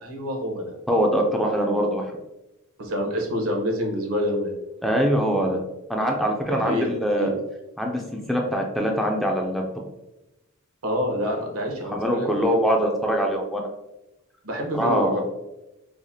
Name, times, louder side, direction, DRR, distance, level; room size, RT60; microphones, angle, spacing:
voice 1, 0.0-0.7 2.8-4.5 6.5-6.9 7.2-7.3 10.8-12.7 14.4-15.2, equal, 85° right, 1 dB, 0.9 m, -27 dB
voice 2, 0.9-2.0 4.8-5.6 5.9-7.4 7.8-8.0 8.3-9.6 11.9-13.7 14.7-15.2, equal, ahead, 0 dB, 0.3 m, -23 dB
4.8 x 2.1 x 2.7 m, 0.96 s
head